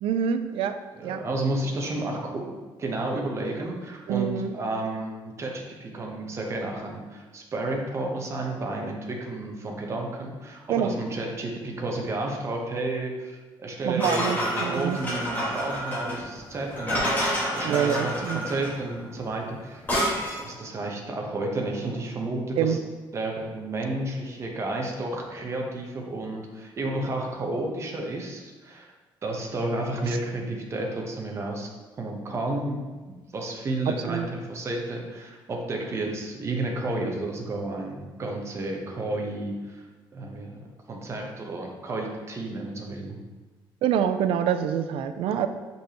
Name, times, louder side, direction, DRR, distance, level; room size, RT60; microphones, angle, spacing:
voice 1, 0.0-0.8 1.0-1.2 4.1-4.5 10.7-10.9 13.8-15.0 17.6-18.4 22.6-22.8 33.9-34.3 43.8-45.5, right 8 dB, 85° right, 9 dB, 0.4 m, -26 dB
voice 2, 0.9-2.5 2.8-19.8 20.4-22.8 23.1-28.9 29.2-31.7 32.0-32.8 33.3-39.8 40.1-40.6 40.9-43.2, right 2 dB, 30° right, 0 dB, 0.9 m, -31 dB
sound 1, 14.0-20.5, equal, 20° left, 1.9 m, -29 dB
6.6 x 5.3 x 3.0 m, 1.3 s
cardioid pair, 165°, 9 cm